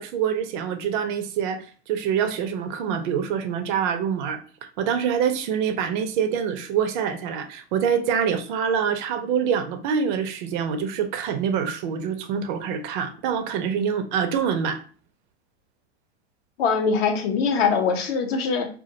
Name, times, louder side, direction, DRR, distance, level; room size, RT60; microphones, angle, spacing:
voice 1, 0.0-14.8, right 7 dB, 45° right, 0.4 m, -25 dB
voice 2, 16.6-18.7, left 5 dB, 60° left, 0.7 m, -22 dB
2.2 x 2.1 x 2.7 m
hypercardioid pair, 115°, 35 cm